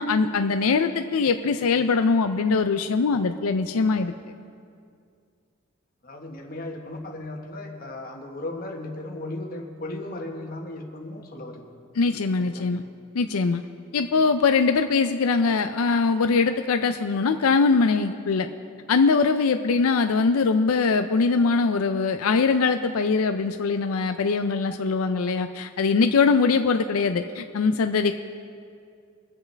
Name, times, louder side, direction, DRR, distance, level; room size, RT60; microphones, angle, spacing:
voice 1, 0.0-4.1 12.0-12.8 13.1-13.6 13.9-18.5 18.9-28.1, left 4 dB, 90° left, 7 dB, 0.5 m, -22 dB
voice 2, 6.0-11.7 12.4-12.8, left 2 dB, 45° left, 1 dB, 1.4 m, -36 dB
23.5 x 8.0 x 3.4 m, 2.3 s
head